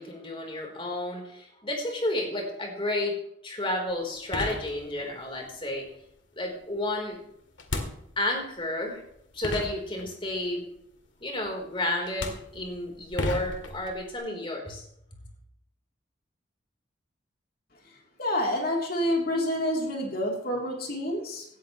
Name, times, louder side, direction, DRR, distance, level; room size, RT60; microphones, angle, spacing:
voice 1, 0.0-3.2 3.4-5.9 6.4-7.2 8.2-9.0 9.3-10.6 11.2-14.8, left 1 dB, 30° left, 1 dB, 3.8 m, -31 dB
sound 1, 3.9-4.0 4.3-5.2 7.6-8.5 9.1-9.2 9.4-10.4 11.5-11.7 12.0-14.2, left 2 dB, 85° left, 2.1 m, -34 dB
voice 2, 17.8-21.4, left 1 dB, 55° left, 0 dB, 3.2 m, -28 dB
17.0 x 13.0 x 3.1 m, 0.74 s
head